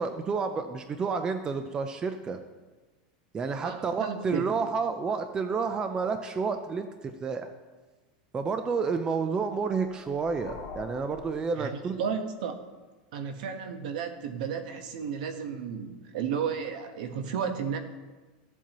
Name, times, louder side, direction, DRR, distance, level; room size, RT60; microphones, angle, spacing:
voice 1, 0.0-2.4 3.3-7.5 8.3-11.9, right 5 dB, 15° right, 8 dB, 0.5 m, -30 dB
voice 2, 3.6-4.4 11.6-12.6 13.1-17.8, right 7 dB, 70° right, 7 dB, 1.1 m, -33 dB
sound 1, 9.6-12.2, left 5 dB, 40° left, 2.1 m, -46 dB
14.5 x 7.4 x 3.0 m, 1.2 s
supercardioid pair, 160°, 5 cm